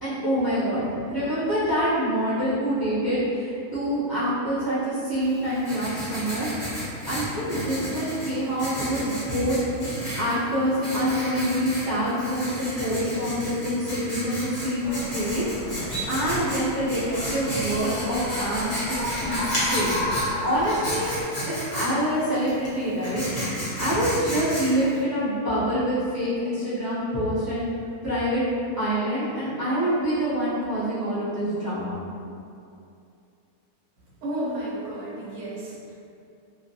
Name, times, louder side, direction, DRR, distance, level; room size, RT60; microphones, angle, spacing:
voice 1, 0.0-6.5 7.1-9.6 9.8-15.5 16.1-18.7 19.1-20.0 20.4-21.1 21.4-27.7 28.0-28.4 28.8-32.0, equal, 30° right, -14 dB, 0.4 m, -26 dB
Writing, 5.2-25.0, equal, 30° left, 0.8 m, -33 dB
sound 1, 14.8-21.2, left 1 dB, 85° left, 1.1 m, -33 dB
voice 2, 34.2-35.9, right 1 dB, 75° right, -7 dB, 1.1 m, -32 dB
2.4 x 2.1 x 2.7 m, 2.5 s
omnidirectional pair, 1.6 m